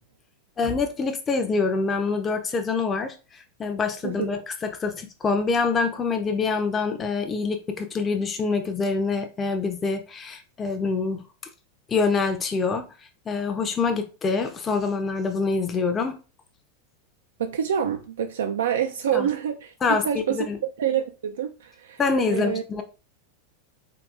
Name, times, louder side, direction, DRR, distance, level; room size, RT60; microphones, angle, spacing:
voice 1, 0.6-11.2 11.9-12.9 13.3-16.2 19.1-19.3 19.8-20.6 22.0-22.8, left 4 dB, 25° left, 0.5 m, -25 dB
voice 2, 17.4-20.4 20.8-22.0 22.3-22.6, right 9 dB, 75° right, 0.3 m, -27 dB
3.8 x 2.7 x 2.3 m
hypercardioid pair, 95°, 0 cm